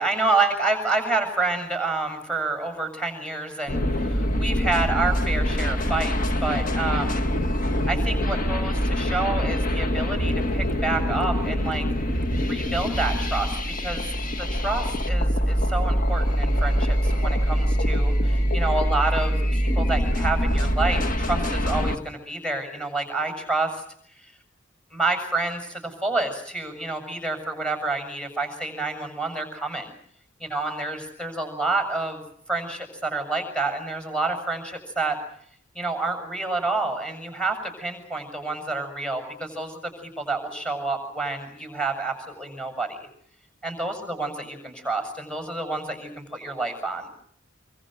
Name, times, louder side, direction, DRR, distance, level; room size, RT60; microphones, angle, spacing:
voice 1, 0.0-7.2 7.9-11.9 12.5-14.1 14.4-23.8 24.2-24.3 24.9-29.9 30.4-32.2 32.5-35.2 35.7-43.1 43.6-47.1, right 3 dB, 5° left, 6 dB, 6.8 m, -28 dB
sound 1, 3.7-22.0, equal, 45° left, 1.9 m, -24 dB
26.0 x 24.0 x 7.7 m, 0.65 s
head